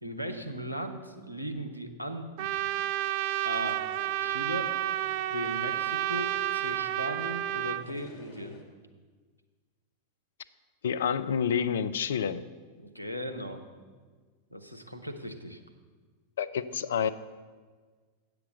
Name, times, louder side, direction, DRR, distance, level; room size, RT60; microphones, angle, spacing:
voice 1, 0.0-2.5 3.4-3.8 4.2-4.7 5.3-8.6 12.8-13.6 14.5-15.6, equal, 90° right, 7 dB, 0.8 m, -37 dB
Trumpet, 2.4-7.8, right 13 dB, 45° right, 0.3 m, -30 dB
sound 1, 3.6-8.6, left 3 dB, 35° left, 1.9 m, -54 dB
voice 2, 10.8-12.5 16.4-17.1, left 7 dB, 60° left, 14 dB, 0.4 m, -28 dB
8.6 x 6.9 x 6.4 m, 1.5 s
figure-of-eight pair, 90°, 0 cm